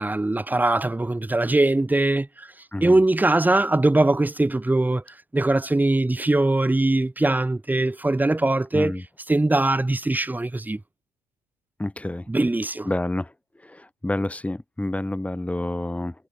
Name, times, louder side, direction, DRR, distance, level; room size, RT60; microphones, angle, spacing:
voice 1, 0.0-2.5 2.8-5.0 5.3-8.9 9.3-10.8 12.3-12.9, right 2 dB, 10° right, 2.2 m, -21 dB
voice 2, 8.7-9.0 11.8-12.3 12.8-13.3 13.6-16.1, left 1 dB, 10° left, 5.1 m, -28 dB
cardioid pair, 110°, 17 cm